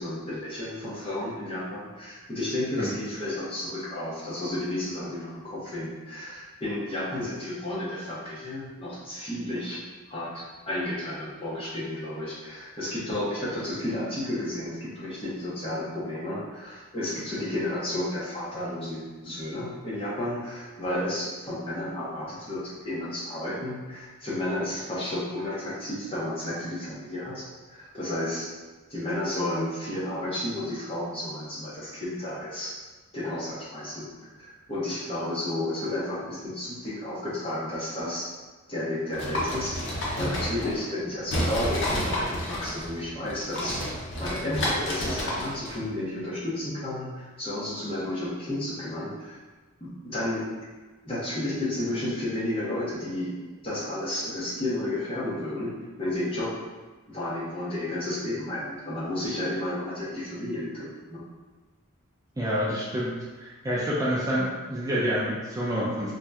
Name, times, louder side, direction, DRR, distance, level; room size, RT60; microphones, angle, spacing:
voice 1, 0.0-9.8 10.1-28.5 28.9-32.7 33.1-38.3 38.7-43.8 44.2-49.4 49.8-50.5 51.0-55.7 56.0-56.5 57.1-61.2, left 1 dB, 25° left, -7 dB, 0.7 m, -32 dB
sound 1, 39.1-41.0 41.3-45.8, equal, 60° left, 0.6 m, -30 dB
voice 2, 62.4-66.1, equal, 15° right, -7 dB, 0.4 m, -28 dB
2.6 x 2.1 x 3.4 m, 1.3 s
head